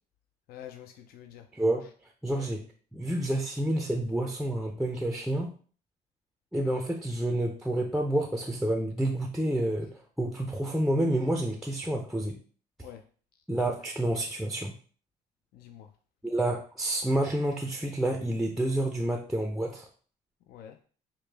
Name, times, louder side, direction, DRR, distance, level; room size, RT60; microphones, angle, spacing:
voice 1, 0.5-1.5 2.3-2.5 12.8-13.0 15.5-15.9 20.5-20.8, left 10 dB, 65° left, 6 dB, 0.4 m, -47 dB
voice 2, 1.5-1.9 2.2-2.6 2.9-5.5 6.5-9.9 10.2-12.4 13.5-14.7 16.2-19.9, right 1 dB, ahead, 2 dB, 0.4 m, -29 dB
4.9 x 2.1 x 3.3 m, 0.42 s
cardioid pair, 110°, 17 cm